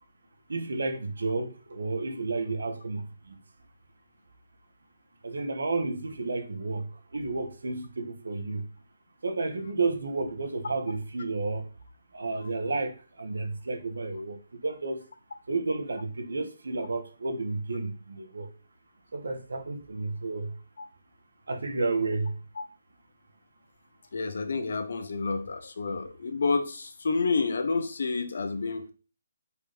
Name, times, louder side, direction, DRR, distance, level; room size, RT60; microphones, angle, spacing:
voice 1, 0.5-3.3 5.2-6.8 7.1-8.6 9.2-11.7 12.1-14.4 14.6-15.0 15.5-18.5 19.1-20.5 21.5-22.3, right 3 dB, 85° right, 1.6 m, -31 dB
voice 2, 24.1-28.9, left 4 dB, 55° left, 1.1 m, -29 dB
5.3 x 5.1 x 5.3 m
hypercardioid pair, 180°, 0 cm